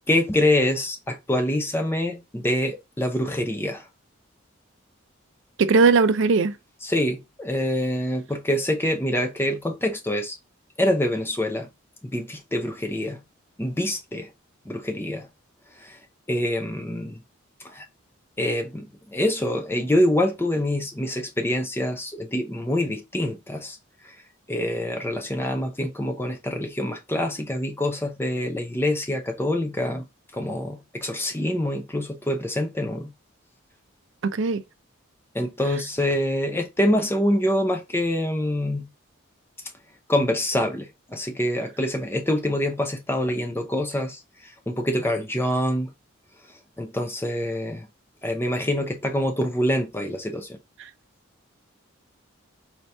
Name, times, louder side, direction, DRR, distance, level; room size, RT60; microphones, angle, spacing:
voice 1, 0.0-3.9 6.8-10.4 10.8-11.7 12.0-13.2 13.6-14.3 14.7-15.3 15.7-17.2 17.6-17.9 18.4-23.8 24.0-24.2 24.5-30.1 30.3-33.1 35.3-38.9 40.1-45.9 46.5-47.9 48.2-50.6, left 1 dB, 10° left, 0.5 m, -25 dB
voice 2, 5.6-6.6 34.2-34.6, right 4 dB, 60° right, 0.4 m, -19 dB
4.4 x 2.8 x 3.3 m
head